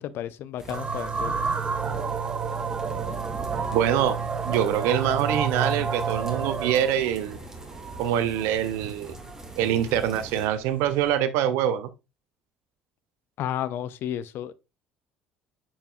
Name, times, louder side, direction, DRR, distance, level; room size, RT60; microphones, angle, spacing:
voice 1, 0.0-1.4 13.4-14.5, left 11 dB, 55° left, 0.5 m, -32 dB
sound 1, 0.6-10.5, right 2 dB, 10° right, 1.7 m, -41 dB
sound 2, 0.7-6.9, right 5 dB, 30° right, 0.9 m, -29 dB
sound 3, 3.5-11.2, right 5 dB, 45° right, 2.4 m, -45 dB
voice 2, 3.7-7.4 8.0-9.1 9.6-11.9, right 10 dB, 65° right, 0.6 m, -25 dB
9.7 x 4.7 x 2.3 m
figure-of-eight pair, 60°, 5 cm